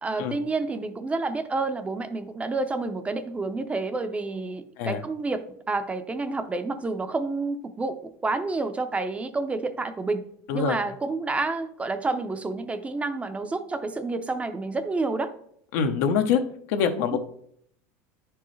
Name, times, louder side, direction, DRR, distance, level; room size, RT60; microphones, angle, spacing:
voice 1, 0.0-10.2 10.5-15.3 17.1-17.2, right 3 dB, 15° right, 9 dB, 0.5 m, -29 dB
voice 2, 15.7-16.4 16.7-17.2, left 7 dB, 75° left, 7 dB, 0.8 m, -24 dB
10.0 x 4.6 x 3.1 m, 0.67 s
supercardioid pair, 120°, 8 cm